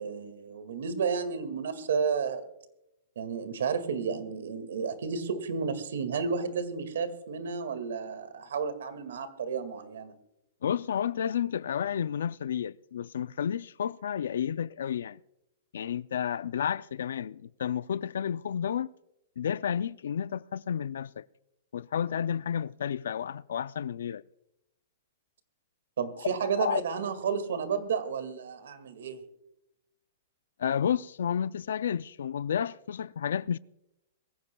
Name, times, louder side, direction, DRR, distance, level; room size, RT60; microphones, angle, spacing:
voice 1, 0.0-2.4 3.2-10.1 26.0-29.2, right 6 dB, 75° right, 2.0 m, -32 dB
voice 2, 10.6-15.2 15.7-18.9 19.4-21.3 21.7-24.2 26.5-26.8 30.6-33.6, left 8 dB, 80° left, 0.4 m, -31 dB
23.0 x 15.5 x 2.3 m
hypercardioid pair, 180°, 0 cm